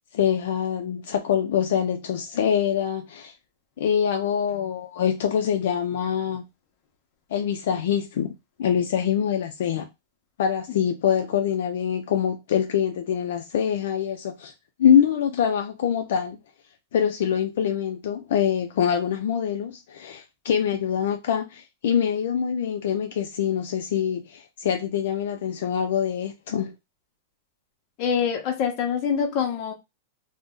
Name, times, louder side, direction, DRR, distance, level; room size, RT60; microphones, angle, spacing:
voice 1, 0.1-3.3 3.8-6.4 7.3-8.3 8.6-9.9 10.4-14.5 14.8-16.4 16.9-26.7, left 8 dB, 65° left, 0.4 m, -24 dB
voice 2, 28.0-29.7, left 7 dB, 35° left, 0.7 m, -25 dB
2.6 x 2.1 x 3.6 m
supercardioid pair, 170°, 0 cm